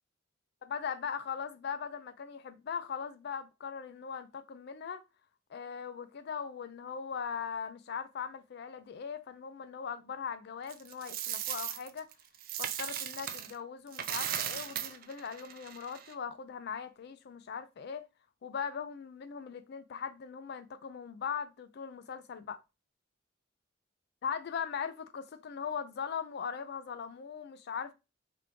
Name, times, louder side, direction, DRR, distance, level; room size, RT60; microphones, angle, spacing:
voice 1, 0.7-5.0 5.5-12.1 12.6-18.1 18.4-22.6 24.2-27.9, left 6 dB, 60° left, 0.4 m, -40 dB
Coin (dropping), 10.7-13.5 13.9-16.1, right 10 dB, 50° right, 0.4 m, -37 dB
3.3 x 2.6 x 3.0 m
head